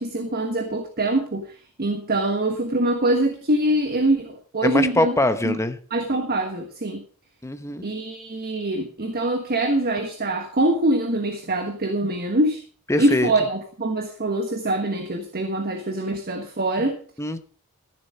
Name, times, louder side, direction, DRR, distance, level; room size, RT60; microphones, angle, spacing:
voice 1, 0.0-5.2 5.4-5.6 5.9-7.0 7.8-12.6 13.0-17.0, right 1 dB, 45° right, 5 dB, 1.3 m, -24 dB
voice 2, 4.6-5.8 7.4-7.9 12.9-13.3 17.2-17.4, left 2 dB, 15° left, 10 dB, 0.9 m, -23 dB
14.0 x 7.5 x 5.5 m, 0.42 s
head